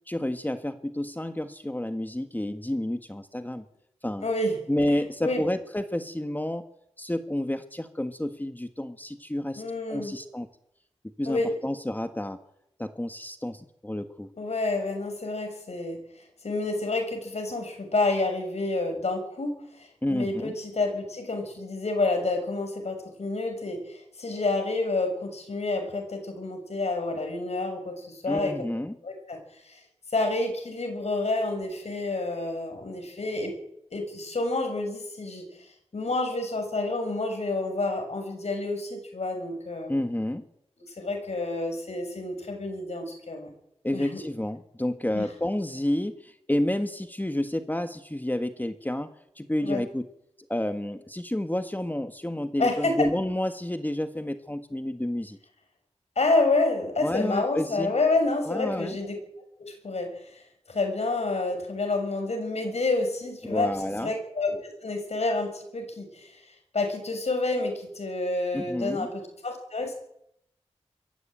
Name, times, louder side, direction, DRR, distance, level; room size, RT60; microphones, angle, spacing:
voice 1, 0.1-3.6 4.0-4.3 4.7-6.6 7.0-10.5 11.2-12.4 12.8-14.3 20.0-20.5 28.3-29.0 39.9-40.4 43.8-50.1 50.5-55.4 57.0-57.9 58.4-59.0 63.4-64.1 68.5-69.1, left 1 dB, 15° left, 8 dB, 1.6 m, -30 dB
voice 2, 4.2-4.6 4.9-5.5 9.5-10.1 11.3-11.5 14.4-16.0 16.4-28.5 29.0-29.4 29.7-29.8 30.1-33.5 33.9-39.9 40.8-43.5 43.9-44.2 45.1-45.3 49.6-49.8 52.6-53.1 56.1-59.2 59.6-60.4 60.7-70.0, left 2 dB, 75° left, 5 dB, 6.6 m, -29 dB
22.5 x 14.5 x 9.1 m, 0.77 s
wide cardioid pair, 50°, 11 cm